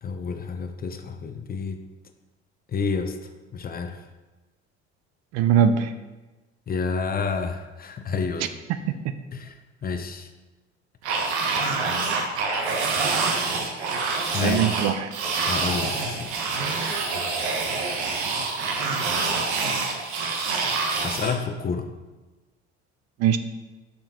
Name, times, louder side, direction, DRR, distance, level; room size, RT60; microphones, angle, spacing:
voice 1, 0.0-1.8 2.7-3.2 3.5-4.0 6.7-8.5 9.3-10.3 14.3-14.8 15.4-16.6 21.0-21.9, left 5 dB, 25° left, 6 dB, 0.6 m, -29 dB
voice 2, 5.3-5.9 8.9-9.0 14.4-15.1 23.2-23.4, right 9 dB, 50° right, 11 dB, 0.5 m, -21 dB
sound 1, 11.0-21.4, right 4 dB, 75° right, 0.9 m, -26 dB
6.9 x 5.2 x 2.9 m, 1.2 s
hypercardioid pair, 60°, 33 cm